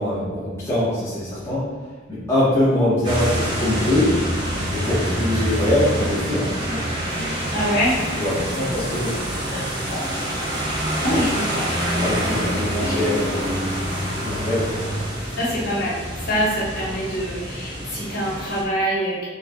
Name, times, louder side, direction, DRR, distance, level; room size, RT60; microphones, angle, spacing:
voice 1, 0.0-1.7 2.1-4.1 4.7-6.9 8.1-9.2 11.1-11.2 11.9-13.5 14.2-14.7, left 1 dB, 15° left, -12 dB, 1.3 m, -23 dB
sound 1, 3.0-18.6, equal, 25° right, 0.9 m, -26 dB
voice 2, 7.5-8.0 9.5-10.0 10.7-11.7 15.4-16.0 16.2-19.3, equal, 50° left, -8 dB, 1.5 m, -25 dB
4.0 x 3.1 x 3.7 m, 1.4 s
head